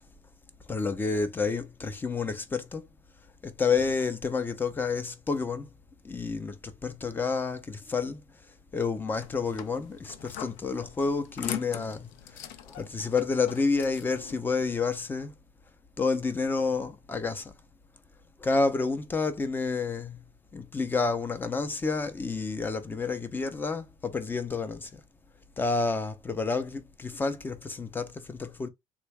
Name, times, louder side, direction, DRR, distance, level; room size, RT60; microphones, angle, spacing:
voice 1, 0.7-2.9 3.4-5.7 6.0-8.2 8.7-15.3 16.0-17.5 18.4-20.2 20.5-25.0 25.6-28.7, left 4 dB, 15° left, 0.5 m, -29 dB
sound 1, 9.2-14.4, left 11 dB, 85° left, 0.5 m, -41 dB
3.5 x 2.1 x 3.2 m
cardioid pair, 125°, 13 cm